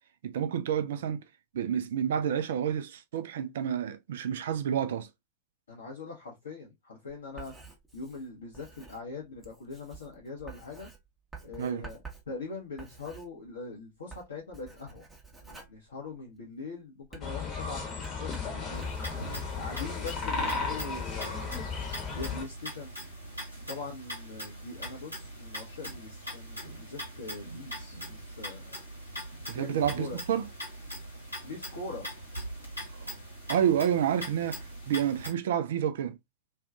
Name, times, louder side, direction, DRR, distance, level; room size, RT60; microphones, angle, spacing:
voice 1, 0.2-1.2 1.5-5.1 11.6-11.9 29.5-30.4 33.0-33.1 33.5-36.2, right 9 dB, 60° right, 0.3 m, -29 dB
voice 2, 5.7-7.5 7.9-10.9 11.4-12.0 12.3-15.0 15.4-18.9 19.6-21.5 22.2-22.9 23.7-28.8 29.5-30.2 31.4-32.1, left 3 dB, 65° left, 0.7 m, -42 dB
Writing, 7.1-13.7 14.0-16.5 17.0-19.2, right 4 dB, 10° right, 0.7 m, -50 dB
sound 1, 17.2-22.4, left 4 dB, 25° left, 0.9 m, -34 dB
sound 2, 18.7-35.3, equal, 90° left, 1.1 m, -41 dB
2.5 x 2.2 x 2.3 m
figure-of-eight pair, 90°, 0 cm